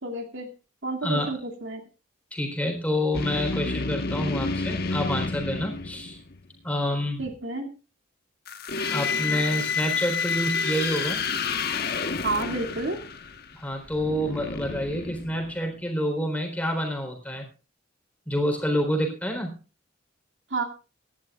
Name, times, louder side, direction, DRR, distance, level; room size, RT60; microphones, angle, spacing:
voice 1, 0.0-0.5 0.8-1.8 7.2-7.7 12.2-13.0 20.5-20.6, right 3 dB, 75° right, 2 dB, 2.5 m, -30 dB
voice 2, 2.3-6.2 6.6-7.2 8.9-11.2 13.5-17.5 18.3-19.6, equal, 10° left, 3 dB, 3.8 m, -28 dB
sound 1, 3.1-6.4 8.5-15.8, left 4 dB, 55° left, 1.3 m, -30 dB
26.0 x 11.0 x 2.4 m, 0.33 s
head